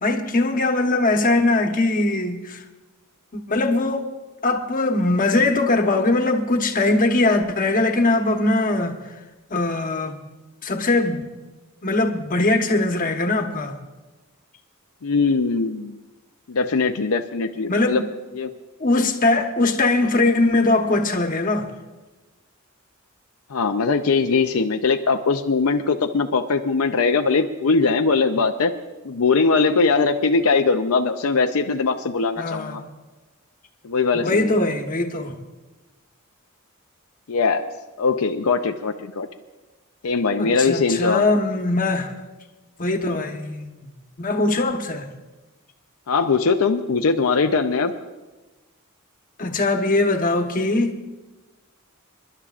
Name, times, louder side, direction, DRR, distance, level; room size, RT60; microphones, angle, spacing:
voice 1, 0.0-2.6 3.3-4.1 4.4-9.0 9.5-10.2 10.6-11.3 11.8-13.8 17.7-18.1 18.8-21.7 32.4-32.8 34.1-35.3 40.4-42.1 42.8-43.7 44.2-45.1 49.4-51.0, left 2 dB, 40° left, 1.1 m, -21 dB
voice 2, 15.0-16.0 16.5-18.0 18.3-18.5 23.5-28.7 29.0-32.8 33.8-34.6 37.3-37.7 38.0-39.3 40.0-41.3 46.1-47.9, left 4 dB, 75° left, 0.6 m, -21 dB
28.0 x 11.5 x 2.5 m
head